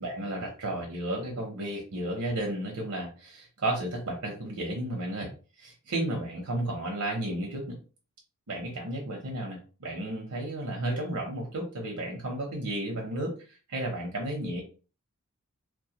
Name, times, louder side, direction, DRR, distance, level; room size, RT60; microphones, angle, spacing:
voice 1, 0.0-5.3 5.6-7.8 8.5-13.3 13.7-14.6, right 1 dB, 80° right, 0 dB, 0.7 m, -33 dB
2.2 x 2.1 x 2.8 m, 0.36 s
head